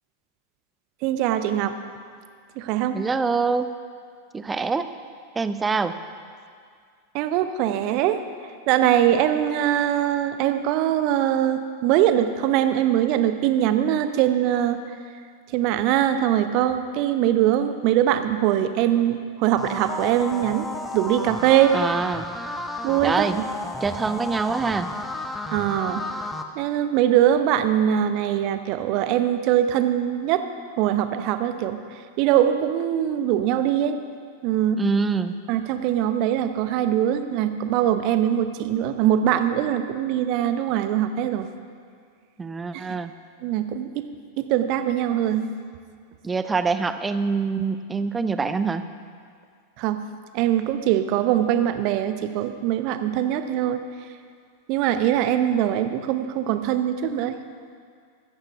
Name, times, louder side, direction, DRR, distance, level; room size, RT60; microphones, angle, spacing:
voice 1, 1.0-1.8 2.6-3.0 7.1-8.2 8.7-14.8 15.5-21.8 22.8-23.4 25.5-26.1 26.6-30.4 30.8-31.8 32.2-34.0 34.4-34.8 35.5-41.5 43.4-44.1 44.4-45.5 49.8-50.0 50.3-53.8 54.7-57.4, right 11 dB, 45° right, 10 dB, 0.8 m, -22 dB
voice 2, 2.9-3.7 4.3-4.9 5.4-5.9 21.7-22.2 23.0-23.4 23.8-24.9 34.8-35.3 42.4-43.1 46.2-48.8, right 4 dB, 15° right, 11 dB, 0.6 m, -24 dB
sound 1, 19.6-26.4, left 2 dB, 5° left, 0.9 m, -33 dB
14.5 x 13.5 x 3.5 m, 2.1 s
figure-of-eight pair, 90°, 0 cm